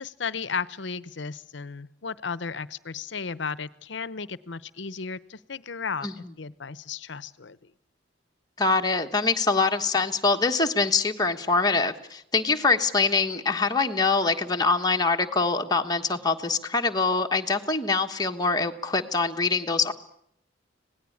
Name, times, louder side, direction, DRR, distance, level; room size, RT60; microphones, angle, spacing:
voice 1, 0.0-7.7, left 5 dB, 65° left, 17 dB, 0.9 m, -34 dB
voice 2, 8.6-19.9, left 4 dB, 20° left, 4 dB, 1.3 m, -24 dB
26.0 x 18.5 x 8.6 m, 0.74 s
head